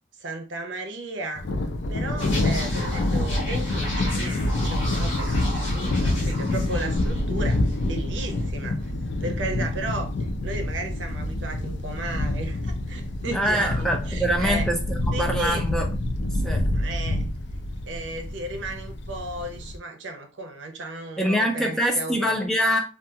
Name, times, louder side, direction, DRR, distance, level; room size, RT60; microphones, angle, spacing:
voice 1, 0.2-1.5 1.9-8.8 9.2-10.1 10.4-14.7 15.1-15.7 16.7-17.2 17.9-22.4, right 2 dB, 75° right, 0.6 m, -34 dB
Thunder, 1.4-19.8, left 1 dB, 65° left, 0.4 m, -27 dB
sound 1, 2.2-7.9 8.2-8.4, left 1 dB, 80° left, 1.2 m, -36 dB
voice 2, 13.3-15.9 16.4-16.6 21.2-22.8, equal, 5° left, 0.4 m, -24 dB
2.8 x 2.3 x 2.3 m
head